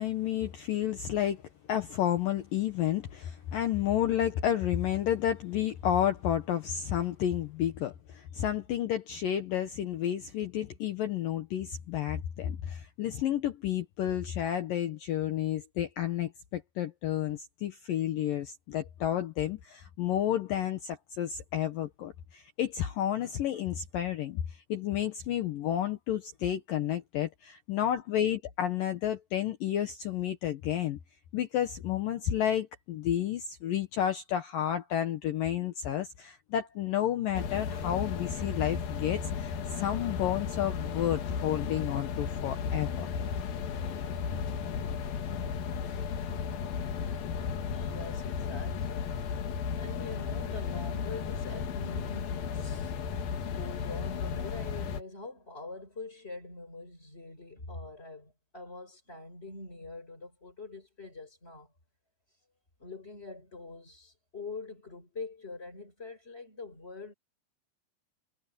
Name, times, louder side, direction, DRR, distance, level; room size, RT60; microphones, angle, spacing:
voice 1, 0.0-1.4 1.7-24.4 24.7-31.0 31.3-43.1, left 11 dB, 85° left, 2.0 m, -31 dB
sound 1, 37.3-55.0, left 6 dB, 55° left, 3.1 m, -34 dB
voice 2, 47.7-49.4 49.8-52.9 53.5-61.7 62.8-67.1, left 3 dB, 15° left, 4.2 m, -44 dB
omnidirectional pair, 5.7 m